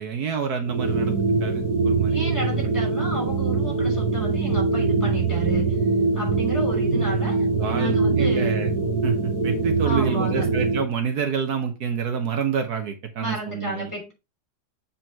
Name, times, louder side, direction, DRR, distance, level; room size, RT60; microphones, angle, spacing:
voice 1, 0.0-2.2 7.6-8.7 9.0-13.9, right 7 dB, 70° right, 1.4 m, -28 dB
sound 1, 0.6-10.9, right 3 dB, 85° right, 2.4 m, -23 dB
voice 2, 2.1-5.8 6.1-8.5 9.8-10.5 13.2-14.1, right 1 dB, 10° left, 4.9 m, -32 dB
7.8 x 4.4 x 4.5 m
omnidirectional pair, 1.8 m